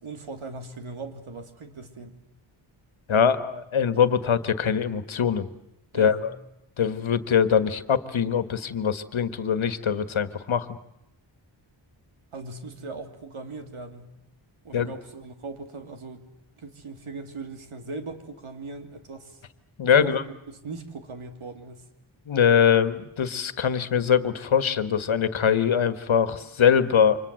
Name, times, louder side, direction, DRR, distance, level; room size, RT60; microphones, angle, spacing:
voice 1, 0.0-2.2 5.9-6.3 12.3-14.1 14.6-16.3 16.6-19.4 20.0-21.8, right 3 dB, 85° right, 6 dB, 3.1 m, -39 dB
voice 2, 3.1-5.5 5.9-6.3 6.8-10.8 14.7-14.9 19.8-20.2 22.3-27.2, left 7 dB, 75° left, 12 dB, 1.6 m, -22 dB
29.5 x 26.0 x 7.7 m, 0.81 s
wide cardioid pair, 120°, 48 cm